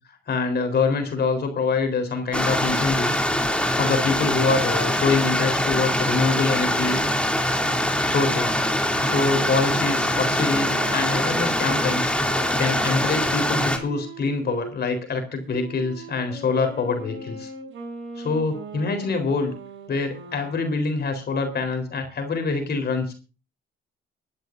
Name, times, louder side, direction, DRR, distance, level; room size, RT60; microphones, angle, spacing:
voice 1, 0.3-3.2 3.8-7.0 8.1-8.6 9.0-17.5 18.2-19.5 19.9-23.1, left 4 dB, 55° left, 6 dB, 4.0 m, -25 dB
Stream, 2.3-13.8, left 1 dB, 5° left, 2.8 m, -23 dB
Wind instrument woodwind instrument, 8.9-14.7 15.5-20.9, right 3 dB, 70° right, 6.3 m, -39 dB
25.0 x 11.5 x 2.6 m, 0.33 s
cardioid pair, 90°, 20 cm